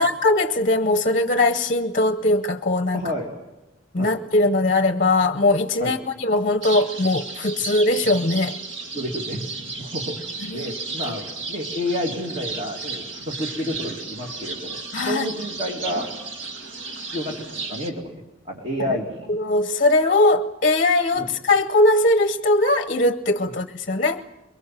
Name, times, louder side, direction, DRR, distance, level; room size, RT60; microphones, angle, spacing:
voice 1, 0.0-3.0 3.9-8.6 10.5-10.7 14.9-15.2 19.3-24.2, left 2 dB, 40° left, 10 dB, 0.8 m, -20 dB
voice 2, 2.9-3.3 4.0-4.1 5.8-6.0 8.9-10.2 10.5-16.1 17.1-18.1 18.5-19.3 21.1-21.3, equal, 30° right, 1 dB, 2.3 m, -30 dB
sound 1, 6.6-17.9, right 3 dB, 65° right, 2.0 m, -34 dB
23.0 x 22.5 x 7.5 m, 1.0 s
head